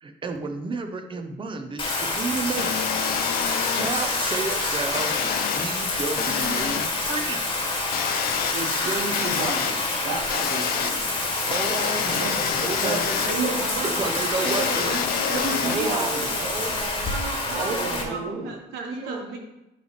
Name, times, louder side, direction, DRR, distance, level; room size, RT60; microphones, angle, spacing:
voice 1, 0.0-3.0 3.7-5.3 5.6-7.5 11.5-13.2 14.0-14.9 15.6-17.1 17.6-18.0, right 3 dB, 30° right, 6 dB, 0.9 m, -31 dB
Bathtub (filling or washing), 1.8-18.0, left 3 dB, 30° left, 1.6 m, -27 dB
sound 1, 2.6-3.9 4.9-5.7 6.2-6.9 7.9-8.5 9.1-9.7 10.3-10.9 11.5-13.3 14.4-15.8, left 10 dB, 60° left, 0.5 m, -28 dB
voice 2, 8.5-11.0 12.0-16.7 17.5-18.5 18.9-19.3, right 2 dB, 65° right, -5 dB, 1.6 m, -32 dB
voice 3, 13.3-15.5 15.7-16.1 17.1-19.4, right 4 dB, 80° right, 2 dB, 1.4 m, -35 dB
10.0 x 3.4 x 4.1 m, 0.96 s
cardioid pair, 110°, 17 cm